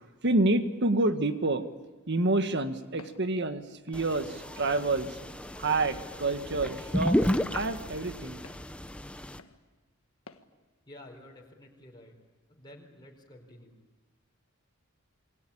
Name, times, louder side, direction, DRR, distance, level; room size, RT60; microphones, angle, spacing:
voice 1, 0.0-1.6 2.1-5.2 5.6-8.4, right 2 dB, 55° right, 8 dB, 1.7 m, -28 dB
Walk footsteps, 3.0-3.3 3.9-4.1 4.8-5.0 5.7-5.9 6.7-6.9 7.5-7.7 8.4-8.7 9.4-9.6 10.3-10.5, left 3 dB, 85° left, 1.6 m, -51 dB
sound 1, 3.9-9.4, equal, 5° left, 0.9 m, -32 dB
voice 2, 10.9-12.2 12.5-13.8, left 1 dB, 20° left, 0 dB, 4.5 m, -51 dB
27.5 x 23.0 x 8.8 m, 1.2 s
head